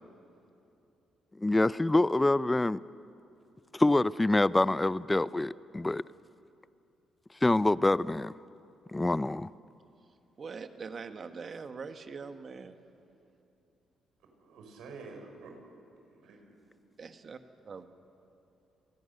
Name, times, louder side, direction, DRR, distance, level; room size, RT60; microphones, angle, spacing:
voice 1, 1.4-2.8 3.7-6.0 7.4-8.3 8.9-9.5, left 2 dB, 15° left, 0.5 m, -26 dB
voice 2, 10.4-12.8 17.0-17.4 17.6-17.8, right 5 dB, 45° right, 1.5 m, -42 dB
voice 3, 14.3-15.6 16.1-16.7, right 4 dB, 85° right, 4.7 m, -49 dB
29.0 x 20.0 x 6.7 m
cardioid pair, 90°, 0 cm